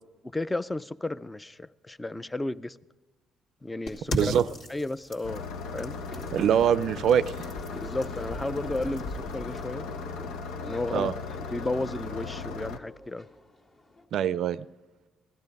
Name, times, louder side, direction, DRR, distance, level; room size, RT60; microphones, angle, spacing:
voice 1, 0.3-2.8 3.6-4.4 4.7-5.4 5.7-6.0 7.8-9.0 9.3-9.8 10.7-11.1 11.5-13.3, left 2 dB, 10° left, 0.4 m, -33 dB
sound 1, 3.9-9.7, left 1 dB, 70° left, 2.3 m, -39 dB
voice 2, 4.1-4.5 6.3-7.5 10.9-11.1 14.1-14.6, right 9 dB, 65° right, 0.4 m, -23 dB
Engine starting, 5.2-12.8, left 4 dB, 85° left, 0.9 m, -37 dB
sound 2, 5.9-14.1, left 1 dB, 45° left, 2.0 m, -47 dB
17.0 x 12.0 x 5.3 m
cardioid pair, 110°, 0 cm